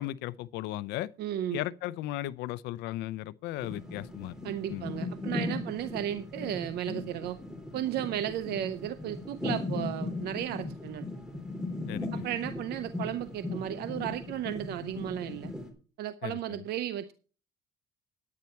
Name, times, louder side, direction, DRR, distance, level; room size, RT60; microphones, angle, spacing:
voice 1, 0.0-1.1 1.5-4.4 4.7-4.9 11.9-12.2 16.2-16.6, left 15 dB, 90° left, 0.6 m, -36 dB
voice 2, 1.2-1.6 4.4-7.4 7.7-11.1 12.1-15.5 16.0-17.1, right 11 dB, 75° right, 0.7 m, -34 dB
sound 1, 3.6-15.7, left 2 dB, 5° right, 3.1 m, -38 dB
10.5 x 9.7 x 4.4 m
cardioid pair, 110°, 17 cm